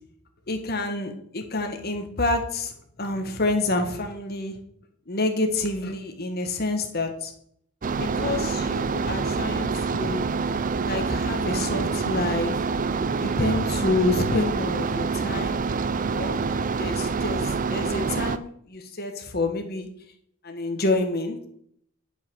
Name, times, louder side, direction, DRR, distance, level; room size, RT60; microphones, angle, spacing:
voice 1, 0.5-2.7 3.0-4.6 5.1-7.3 8.0-10.3 10.9-12.5 13.2-15.7 16.1-16.4 16.8-19.9 20.4-21.5, left 2 dB, 50° left, 5 dB, 1.7 m, -28 dB
sound 1, 7.8-18.4, right 4 dB, 40° right, 0.5 m, -26 dB
11.0 x 5.8 x 6.4 m, 0.68 s
head